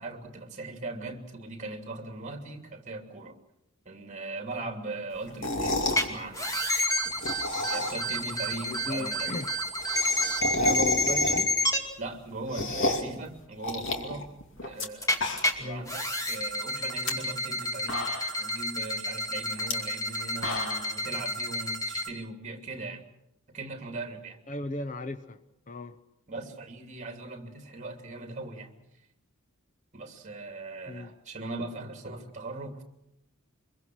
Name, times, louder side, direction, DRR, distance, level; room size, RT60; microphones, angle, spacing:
voice 1, 0.0-3.4 3.8-6.5 7.5-9.3 12.0-14.3 14.6-15.3 15.6-18.1 18.4-23.0 23.5-24.4 26.3-28.7 29.9-32.8, right 2 dB, 35° right, 2.8 m, -39 dB
sound 1, 5.3-6.1 7.1-8.2 8.5-8.6 8.8-8.9 9.1-9.2 9.5-11.7 12.1-13.2 13.6-14.9 15.1-15.7 16.1-16.2 16.8-17.1 17.6-17.7 17.9-18.5 19.6-19.7 20.2-21.0, left 1 dB, 65° left, 2.6 m, -31 dB
sound 2, 5.9-6.0 6.3-11.8 15.0-15.5 15.9-22.1, left 1 dB, 15° left, 2.4 m, -30 dB
voice 2, 8.6-9.5 10.5-11.6 15.6-15.9 24.5-25.4 25.7-26.0 30.9-31.1, left 2 dB, 40° left, 0.9 m, -36 dB
24.5 x 22.5 x 6.3 m
head